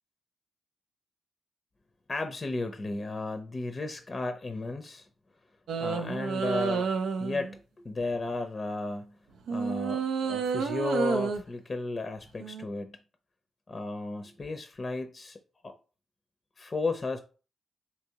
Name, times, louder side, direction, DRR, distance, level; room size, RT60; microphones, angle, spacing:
voice 1, 2.1-5.1 5.8-6.9 7.2-9.2 9.5-13.0 13.7-15.4 15.6-15.7 16.6-17.2, left 3 dB, 40° left, 0.5 m, -34 dB
sound 1, 5.7-7.6 9.5-11.4 12.4-12.6, right 5 dB, 80° right, 0.3 m, -30 dB
3.4 x 2.8 x 2.8 m
supercardioid pair, 40°, 0 cm